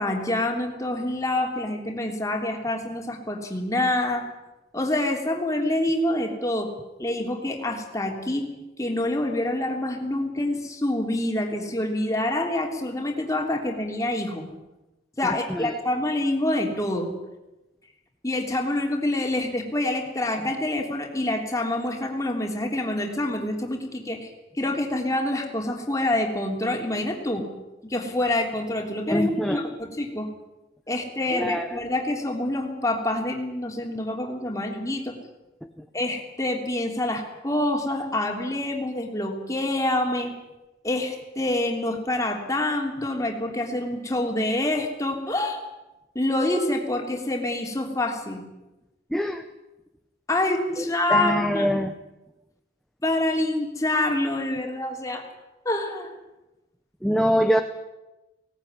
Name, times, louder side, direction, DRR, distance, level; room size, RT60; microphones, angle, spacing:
voice 1, 0.0-4.2 4.7-6.7 7.0-8.5 8.8-14.4 15.2-17.1 18.2-24.3 24.6-27.4 27.8-30.3 30.9-35.1 35.9-40.3 40.8-45.6 46.1-48.4 50.3-51.7 53.0-55.2 55.6-56.1, left 1 dB, 15° left, 2 dB, 3.3 m, -26 dB
voice 2, 15.2-15.7 29.1-29.7 31.3-31.8 35.8-35.9 49.1-49.5 50.8-50.9 51.1-51.9 57.0-57.6, equal, ahead, 5 dB, 0.8 m, -24 dB
18.5 x 18.0 x 9.8 m, 1.0 s
head